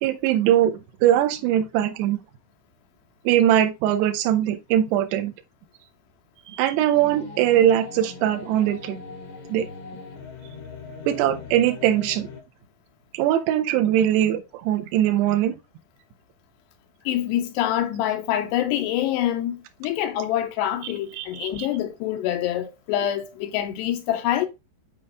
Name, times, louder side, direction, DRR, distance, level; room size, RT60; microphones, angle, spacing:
voice 1, 0.0-2.2 3.2-5.3 6.5-9.0 9.5-9.7 11.1-12.3 13.1-15.6 21.1-21.7, right 11 dB, 75° right, 2.9 m, -21 dB
sound 1, 6.9-12.4, left 4 dB, 60° left, 1.3 m, -40 dB
voice 2, 17.1-24.5, left 12 dB, 80° left, 2.7 m, -26 dB
9.3 x 4.1 x 3.6 m
omnidirectional pair, 5.2 m